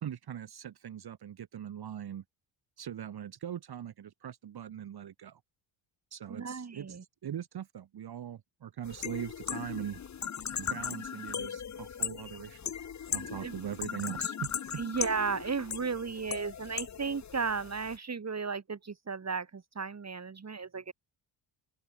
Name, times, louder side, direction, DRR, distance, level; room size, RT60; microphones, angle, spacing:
voice 1, 0.0-2.2 2.8-5.4 6.1-10.0 10.6-12.7 13.1-14.8, right 9 dB, 50° right, 1.7 m, -41 dB
voice 2, 6.3-7.0 13.4-13.5 14.8-20.9, right 5 dB, 30° right, 2.8 m, -34 dB
sound 1, 8.8-18.0, left 8 dB, 35° left, 1.1 m, -38 dB
open air
cardioid pair, 75°, 49 cm